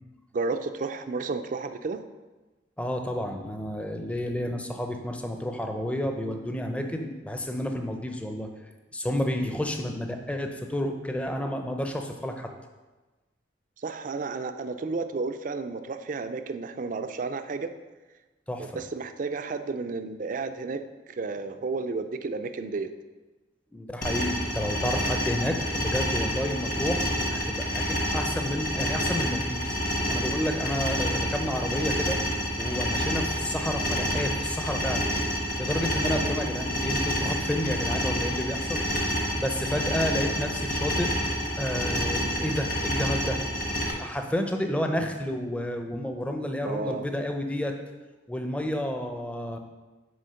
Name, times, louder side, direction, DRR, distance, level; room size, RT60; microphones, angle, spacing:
voice 1, 0.3-2.0 13.8-17.7 18.6-20.8 21.1-22.9 36.0-36.4 46.5-47.1, right 4 dB, 45° right, 9 dB, 0.4 m, -32 dB
voice 2, 2.8-8.5 8.9-12.5 18.5-18.7 23.7-29.7 30.1-32.2 32.6-35.1 35.6-38.8 39.4-41.1 41.6-43.4 44.0-47.7 48.3-49.6, left 1 dB, 5° left, 4 dB, 0.5 m, -30 dB
sound 1, 24.0-43.9, equal, 50° left, 1.2 m, -28 dB
6.3 x 4.4 x 5.6 m, 1.2 s
head